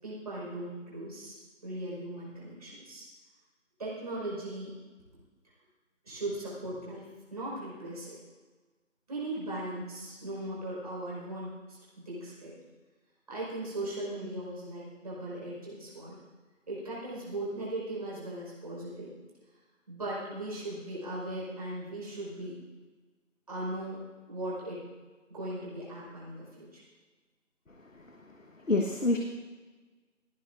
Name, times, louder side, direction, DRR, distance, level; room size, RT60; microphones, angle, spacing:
voice 1, 0.0-3.1 3.8-4.7 6.0-8.1 9.1-12.5 13.3-16.2 16.7-19.1 19.9-22.6 23.5-24.8 25.3-26.8, right 1 dB, 30° right, -6 dB, 5.0 m, -38 dB
voice 2, 27.8-29.2, left 2 dB, 75° left, 2 dB, 1.5 m, -30 dB
18.0 x 15.5 x 2.6 m, 1.3 s
figure-of-eight pair, 165°, 39 cm